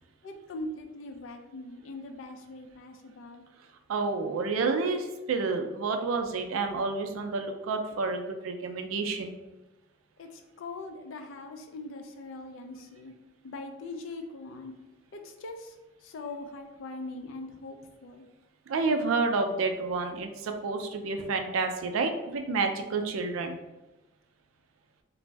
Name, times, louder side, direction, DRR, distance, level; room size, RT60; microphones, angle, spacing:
voice 1, 0.2-3.5 10.2-13.1 13.4-14.7 15.1-15.8 16.0-18.3, left 2 dB, 70° left, 5 dB, 0.4 m, -41 dB
voice 2, 3.9-9.3 18.7-23.6, right 4 dB, 80° right, 6 dB, 0.4 m, -29 dB
2.5 x 2.0 x 3.2 m, 1.0 s
head